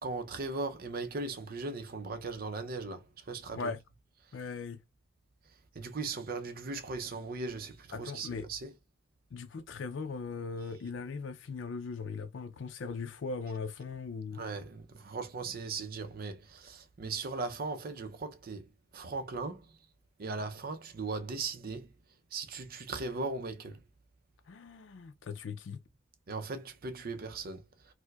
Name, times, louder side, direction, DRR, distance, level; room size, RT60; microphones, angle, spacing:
voice 1, 0.0-3.7 5.8-8.7 14.3-18.6 18.9-19.6 20.2-21.9 22.3-23.8 26.3-27.6, right 3 dB, 50° right, 0.5 m, -38 dB
voice 2, 4.3-4.8 7.9-8.5 9.3-14.4 24.5-25.8, left 4 dB, 85° left, 0.5 m, -39 dB
4.5 x 2.1 x 2.2 m
head